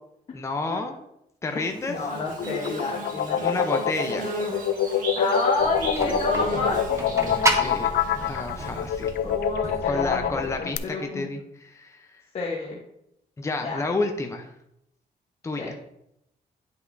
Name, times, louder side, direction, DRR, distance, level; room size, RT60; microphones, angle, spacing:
voice 1, 0.3-0.9 1.4-2.0 3.4-4.3 7.5-7.9 8.3-9.1 9.9-12.1 13.4-14.5 15.4-15.7, left 3 dB, 15° left, 4 dB, 0.6 m, -30 dB
voice 2, 1.5-3.6 5.1-7.7 9.2-11.3 12.3-12.8 13.6-13.8 15.6-15.7, left 3 dB, 40° left, -2 dB, 1.1 m, -30 dB
Bird / Buzz, 1.6-9.3, right 1 dB, 55° right, 1.7 m, -35 dB
sound 1, 2.3-10.8, left 8 dB, 75° left, 0.4 m, -26 dB
sound 2, 5.6-10.6, right 2 dB, 20° right, 0.8 m, -31 dB
9.9 x 5.5 x 2.6 m, 0.80 s
cardioid pair, 150°, 16 cm